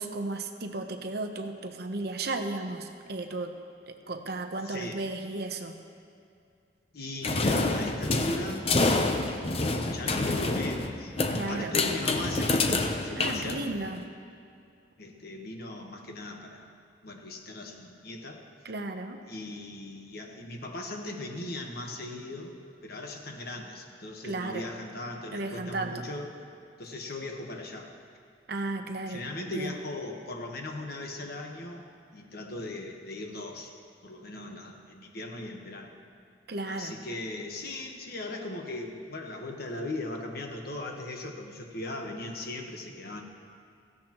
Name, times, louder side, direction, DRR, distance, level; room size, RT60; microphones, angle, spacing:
voice 1, 0.0-3.5 3.9-5.8 11.3-11.7 13.2-14.1 18.6-19.2 24.2-24.7 25.3-26.0 28.5-29.8 36.5-37.0, right 2 dB, 60° right, 6 dB, 0.9 m, -34 dB
voice 2, 4.6-5.0 6.9-9.3 9.9-13.6 15.0-16.7 17.0-18.4 19.2-26.3 26.8-27.9 28.7-31.9 32.1-33.7 34.0-35.9 36.7-43.2, left 2 dB, 55° left, 2 dB, 1.3 m, -38 dB
sound 1, 7.2-14.0, left 2 dB, 35° left, 0.7 m, -27 dB
16.5 x 15.0 x 3.0 m, 2.4 s
head